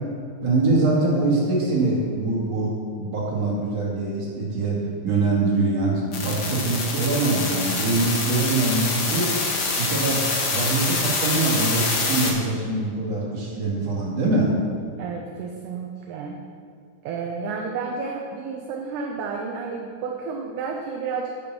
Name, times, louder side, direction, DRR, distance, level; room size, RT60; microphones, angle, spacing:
voice 1, 0.4-2.7 3.0-4.8 5.0-9.3 9.7-10.2 10.5-14.5, right 3 dB, 55° right, -5 dB, 3.2 m, -23 dB
sound 1, 6.1-12.3, left 3 dB, 60° left, 1.0 m, -25 dB
voice 2, 15.0-16.4 17.0-21.3, right 5 dB, 75° right, 1 dB, 2.2 m, -31 dB
8.6 x 7.8 x 6.0 m, 2.2 s
omnidirectional pair, 3.7 m